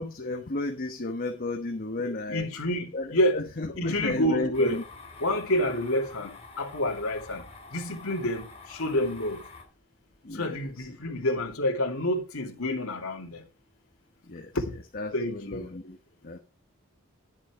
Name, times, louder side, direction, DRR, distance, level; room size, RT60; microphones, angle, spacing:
voice 1, 0.0-2.5 2.9-4.8 10.2-11.1 14.3-14.5 14.9-16.0 16.2-16.4, left 2 dB, 45° left, 1.2 m, -33 dB
voice 2, 2.3-3.4 3.8-4.8 5.2-6.3 6.6-7.4 7.7-8.5 8.8-9.4 10.4-13.4 15.1-15.6, left 1 dB, 75° left, 2.5 m, -28 dB
sound 1, 4.5-9.6, left 4 dB, 25° left, 4.0 m, -47 dB
11.0 x 7.3 x 4.8 m
head